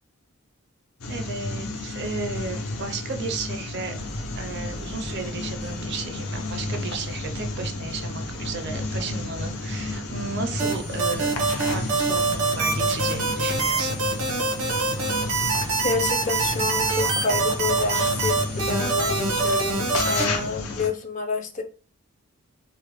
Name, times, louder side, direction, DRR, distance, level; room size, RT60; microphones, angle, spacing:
sound 1, 1.0-20.9, left 2 dB, 75° left, 0.7 m, -32 dB
voice 1, 1.1-4.0 4.4-11.3 11.6-14.0, right 4 dB, 50° right, 0.4 m, -34 dB
sound 2, 3.9-20.6, equal, 55° left, 1.2 m, -41 dB
sound 3, 10.6-20.2, right 3 dB, 85° right, 0.9 m, -24 dB
voice 2, 15.8-21.6, left 3 dB, 35° left, 0.5 m, -29 dB
3.5 x 2.0 x 3.0 m
head